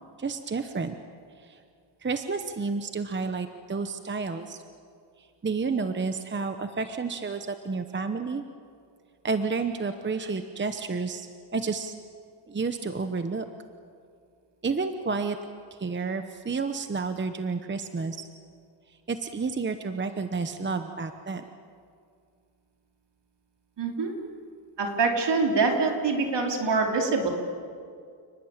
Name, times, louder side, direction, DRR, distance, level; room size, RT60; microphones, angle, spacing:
voice 1, 0.2-0.9 2.0-4.6 5.4-8.4 9.2-11.9 12.5-13.4 14.6-15.4 15.8-18.3 19.1-21.4, right 4 dB, 25° right, 8 dB, 0.9 m, -30 dB
voice 2, 23.8-24.1 24.8-27.3, right 4 dB, 65° right, 2 dB, 3.8 m, -25 dB
29.5 x 20.0 x 8.8 m, 2.3 s
wide cardioid pair, 175°, 45 cm